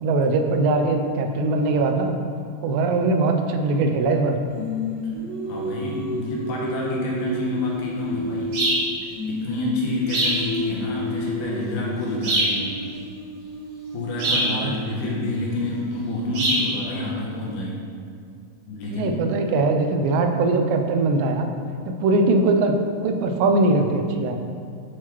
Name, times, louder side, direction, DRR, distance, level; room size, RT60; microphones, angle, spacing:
voice 1, 0.0-2.2 2.6-4.4 14.4-14.7 18.9-21.5 21.9-22.7 23.0-24.4, right 3 dB, 90° right, 4 dB, 2.3 m, -21 dB
Singing, 4.5-8.8 9.1-15.1, left 1 dB, 55° right, 1.9 m, -32 dB
voice 2, 5.4-8.6 9.2-12.8 13.9-17.8 18.7-19.2, left 2 dB, 75° left, -4 dB, 2.3 m, -28 dB
sound 1, 8.5-8.9 10.1-10.4 12.2-12.6 14.2-14.5 16.3-16.7, right 1 dB, 70° right, 3.2 m, -22 dB
7.7 x 4.5 x 3.0 m, 2.3 s
omnidirectional pair, 3.9 m